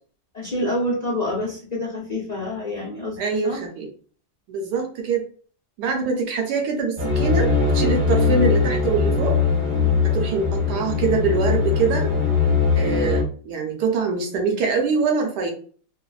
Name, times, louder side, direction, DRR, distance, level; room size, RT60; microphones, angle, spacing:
voice 1, 0.3-3.2 3.4-3.6, left 1 dB, 65° left, -5 dB, 0.4 m, -27 dB
voice 2, 3.2-3.9 4.5-5.2 5.8-9.4 10.0-12.1 12.8-15.5, right 4 dB, 70° right, 2 dB, 1.1 m, -24 dB
sound 1, 7.0-13.2, left 5 dB, 25° right, 0.9 m, -21 dB
3.1 x 2.1 x 2.3 m, 0.43 s
omnidirectional pair, 2.0 m